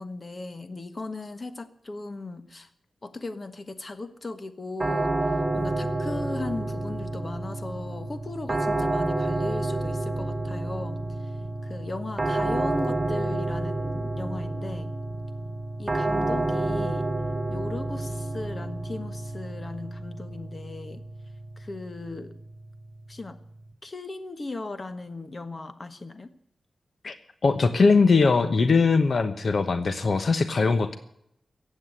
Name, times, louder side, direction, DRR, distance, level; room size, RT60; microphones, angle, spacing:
voice 1, 0.0-2.7 3.0-5.2 5.5-11.0 11.6-14.9 15.8-17.1 17.5-21.0 21.6-22.3 23.1-23.4 23.8-26.3, left 2 dB, 35° left, 10 dB, 1.4 m, -37 dB
sound 1, 4.8-23.7, right 2 dB, 20° right, 1.5 m, -30 dB
voice 2, 27.4-31.0, left 4 dB, 55° left, 10 dB, 1.1 m, -21 dB
15.0 x 8.9 x 9.8 m, 0.74 s
wide cardioid pair, 120°, 0 cm